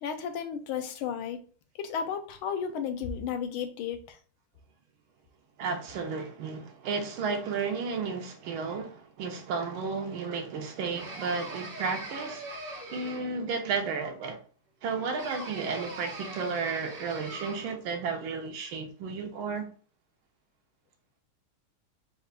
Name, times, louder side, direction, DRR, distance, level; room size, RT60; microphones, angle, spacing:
voice 1, 0.0-1.4 1.8-4.2, left 7 dB, 85° left, 1.5 m, -33 dB
voice 2, 5.6-12.5 12.9-14.4 14.8-19.7, right 5 dB, 80° right, 1.6 m, -33 dB
sound 1, 11.0-13.5 15.2-17.8, right 2 dB, 45° right, 0.7 m, -41 dB
5.4 x 2.4 x 3.3 m
omnidirectional pair, 2.2 m